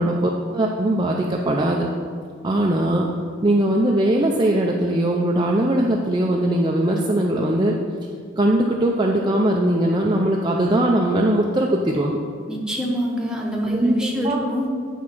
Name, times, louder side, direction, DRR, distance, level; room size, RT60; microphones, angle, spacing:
voice 1, 0.0-1.9 2.4-3.1 3.4-7.8 8.3-12.2 13.7-13.9 14.2-14.5, right 1 dB, 20° right, -1 dB, 0.4 m, -20 dB
voice 2, 12.5-14.7, equal, 5° right, -1 dB, 1.0 m, -25 dB
9.5 x 3.6 x 5.9 m, 2.1 s
head